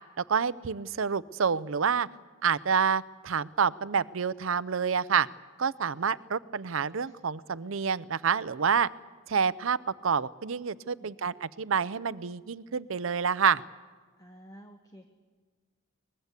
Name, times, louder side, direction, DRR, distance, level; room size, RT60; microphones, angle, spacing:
voice 1, 0.2-2.1 2.4-5.3 5.6-8.9 9.3-9.8 10.0-13.6, right 6 dB, 70° right, 18 dB, 0.6 m, -28 dB
voice 2, 14.2-15.1, right 1 dB, 20° left, 4 dB, 1.4 m, -52 dB
23.0 x 20.5 x 8.2 m, 1.5 s
head